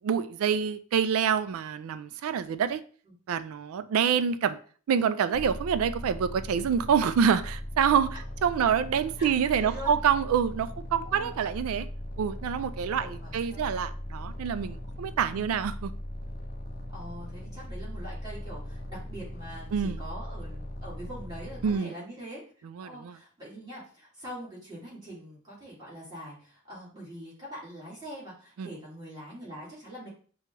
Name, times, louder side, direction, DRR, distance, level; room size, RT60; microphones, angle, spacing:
voice 1, 0.0-2.8 3.3-4.6 4.9-8.1 8.4-11.9 12.2-15.9 19.7-20.0 21.6-21.9 22.8-23.2 28.6-28.7, right 7 dB, 80° right, 13 dB, 0.3 m, -26 dB
sound 1, 5.3-21.8, left 1 dB, 45° left, 0.5 m, -39 dB
voice 2, 9.2-10.0 11.1-11.4 12.9-13.6 15.3-15.4 16.9-30.1, equal, 20° right, -8 dB, 1.9 m, -43 dB
5.9 x 2.3 x 3.0 m, 0.43 s
head